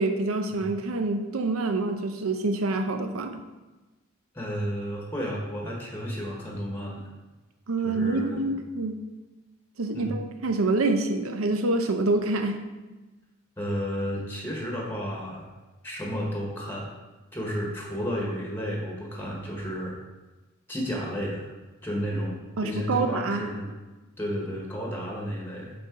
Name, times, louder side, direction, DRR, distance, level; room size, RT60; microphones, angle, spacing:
voice 1, 0.0-3.4 7.7-9.0 9.8-12.6 22.6-23.5, right 2 dB, 85° right, 6 dB, 0.7 m, -26 dB
voice 2, 4.3-7.1 7.8-8.4 9.9-10.1 13.6-15.5 15.8-16.9 17.3-19.9 20.7-21.5 21.8-23.7 24.2-25.7, equal, 10° left, -2 dB, 1.2 m, -32 dB
8.5 x 4.1 x 3.7 m, 1.2 s
head